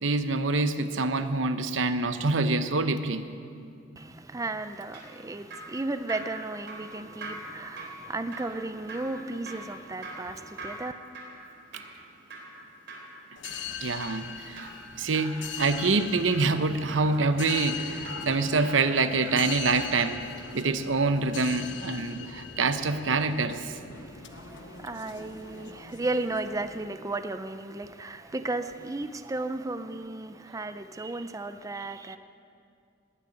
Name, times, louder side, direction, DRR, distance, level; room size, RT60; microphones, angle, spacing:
voice 1, 0.0-3.3 13.8-14.7 14.9-20.2 20.5-23.8, right 3 dB, 85° right, 0.8 m, -26 dB
voice 2, 4.0-10.9 23.9-32.2, right 2 dB, 15° right, 0.4 m, -34 dB
Drip, 4.6-20.1 20.4-20.5, right 1 dB, 60° right, 3.9 m, -44 dB
sound 1, 13.4-26.8, left 7 dB, 70° left, 0.9 m, -41 dB
19.0 x 6.7 x 9.8 m
head